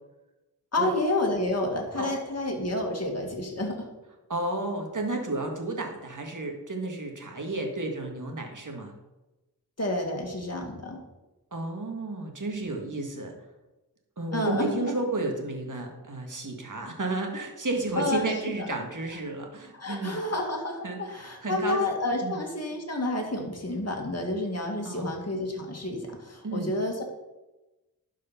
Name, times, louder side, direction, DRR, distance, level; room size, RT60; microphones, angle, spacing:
voice 1, 0.7-3.9 9.8-11.0 14.3-14.9 18.0-18.3 18.6-18.7 19.7-27.0, left 2 dB, 40° left, 1 dB, 2.1 m, -30 dB
voice 2, 4.3-8.9 11.5-13.3 14.2-20.2 20.8-21.8 22.2-22.4 24.9-25.1 26.4-26.7, right 2 dB, 50° right, 2 dB, 1.9 m, -32 dB
11.5 x 4.9 x 5.8 m, 1.1 s
wide cardioid pair, 65°, 39 cm